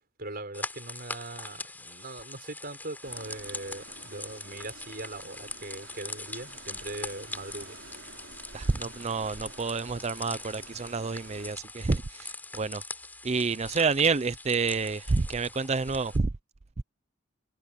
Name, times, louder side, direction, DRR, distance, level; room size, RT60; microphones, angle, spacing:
voice 1, 0.2-7.8, right 2 dB, 50° right, 5.6 m, -40 dB
sound 1, 0.5-16.2, left 2 dB, 10° left, 3.7 m, -42 dB
sound 2, 3.0-11.6, right 3 dB, 70° right, 3.9 m, -50 dB
voice 2, 8.5-12.8 13.2-16.3, right 4 dB, 35° right, 0.5 m, -28 dB
head